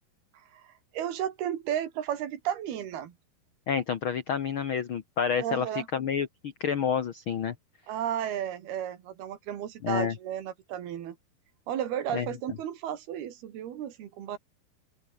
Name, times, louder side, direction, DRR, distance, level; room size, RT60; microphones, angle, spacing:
voice 1, 0.5-3.2 5.4-5.9 7.9-11.2 11.7-14.4, right 10 dB, 85° right, 4.2 m, -33 dB
voice 2, 3.7-7.5 9.8-10.2 12.1-12.3, left 7 dB, 80° left, 1.1 m, -29 dB
open air
omnidirectional pair, 4.4 m